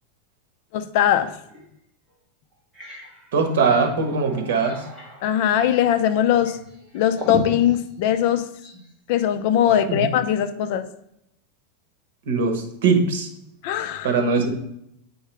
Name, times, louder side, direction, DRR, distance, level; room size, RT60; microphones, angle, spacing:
voice 1, 0.7-1.3 5.2-6.6 6.9-8.5 9.1-10.9 13.6-14.1, left 10 dB, 45° left, 11 dB, 0.5 m, -20 dB
sound 1, 1.5-1.6 2.1-2.2 2.5-8.9, equal, 5° right, 1.5 m, -37 dB
voice 2, 3.3-4.8 9.9-10.1 12.3-13.3 14.0-14.5, right 4 dB, 75° right, 5 dB, 1.3 m, -21 dB
8.6 x 4.6 x 3.4 m, 0.78 s
supercardioid pair, 170°, 0 cm